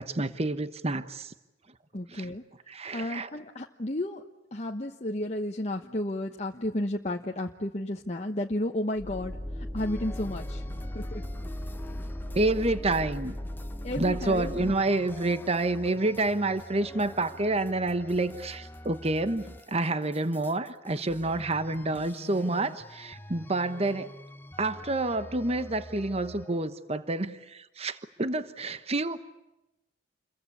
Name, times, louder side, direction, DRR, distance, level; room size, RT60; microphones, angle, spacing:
voice 1, 0.0-1.3 2.1-2.3 2.7-3.3 12.3-13.3 14.0-24.1 24.6-29.2, right 2 dB, 35° right, 12 dB, 1.1 m, -28 dB
voice 2, 1.9-2.4 2.9-4.2 4.5-11.2 13.8-14.7, left 1 dB, 35° left, 2 dB, 1.2 m, -33 dB
sound 1, 9.0-14.7, left 1 dB, 10° right, 3.3 m, -37 dB
sound 2, 9.8-26.7, equal, 10° left, 1.1 m, -47 dB
29.0 x 22.5 x 8.3 m, 0.96 s
head